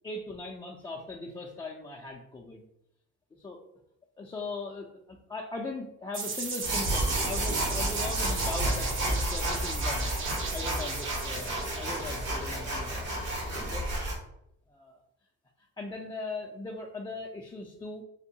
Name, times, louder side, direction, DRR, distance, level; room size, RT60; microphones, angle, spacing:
voice 1, 0.0-2.6 3.4-3.6 4.2-10.1 10.5-13.1 13.5-13.9 14.7-15.0 15.8-18.0, left 3 dB, 15° left, -1 dB, 0.3 m, -39 dB
sound 1, 6.1-12.9, right 4 dB, 45° right, 0.6 m, -37 dB
sound 2, 6.6-14.1, right 1 dB, 75° right, 1.2 m, -31 dB
3.5 x 2.2 x 2.7 m, 0.77 s
cardioid pair, 90°, 30 cm